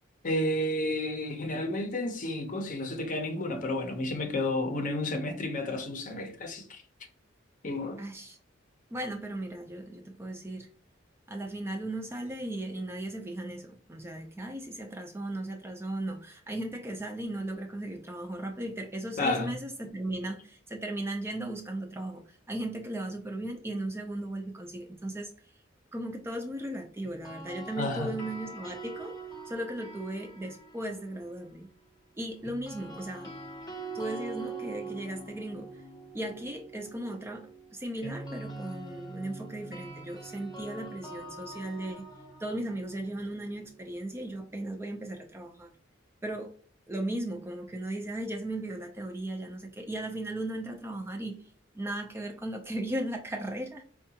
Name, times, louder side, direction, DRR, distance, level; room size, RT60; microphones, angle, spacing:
voice 1, 0.2-6.8 7.6-8.0 19.2-19.5 27.8-28.1, left 1 dB, 40° left, 0.7 m, -31 dB
voice 2, 8.0-8.4 8.9-10.7 11.3-25.3 25.9-29.2 29.5-31.7 32.2-33.3 33.9-35.7 36.1-42.1 42.4-45.7 46.2-46.5 46.9-51.4 51.7-53.8, right 1 dB, 15° right, 0.4 m, -36 dB
sound 1, 27.0-31.2 32.4-44.3, right 3 dB, 20° left, 0.9 m, -44 dB
4.6 x 2.2 x 2.8 m
head